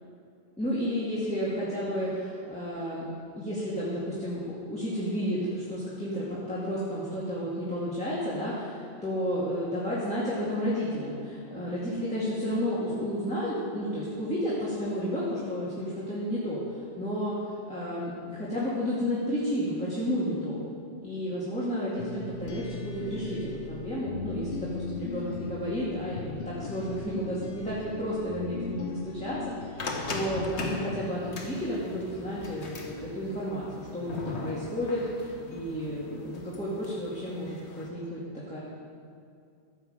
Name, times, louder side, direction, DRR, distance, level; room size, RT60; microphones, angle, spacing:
voice 1, 0.6-3.0 3.4-20.6 21.0-38.6, equal, 5° left, -9 dB, 2.1 m, -32 dB
sound 1, 22.0-30.7, left 4 dB, 60° left, 1.0 m, -38 dB
sound 2, 29.8-37.9, left 3 dB, 85° left, 1.5 m, -39 dB
14.5 x 8.0 x 5.2 m, 2.4 s
omnidirectional pair, 1.1 m